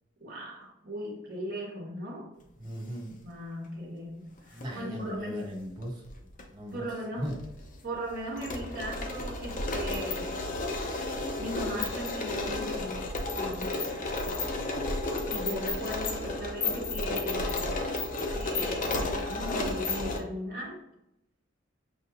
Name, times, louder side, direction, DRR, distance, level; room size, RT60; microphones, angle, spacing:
voice 1, 0.2-2.3 3.2-5.4 6.7-7.3 7.8-10.4 11.4-14.6 15.2-17.8 18.3-20.8, equal, 50° right, -5 dB, 1.1 m, -38 dB
voice 2, 2.6-3.1 4.5-6.0 6.5-6.8 7.2-7.3, equal, 20° right, -4 dB, 1.3 m, -37 dB
sound 1, 4.4-4.6 5.7-6.4 6.7-6.8 7.2-20.2, left 2 dB, 40° left, 0.6 m, -32 dB
6.2 x 2.8 x 2.4 m, 0.86 s
head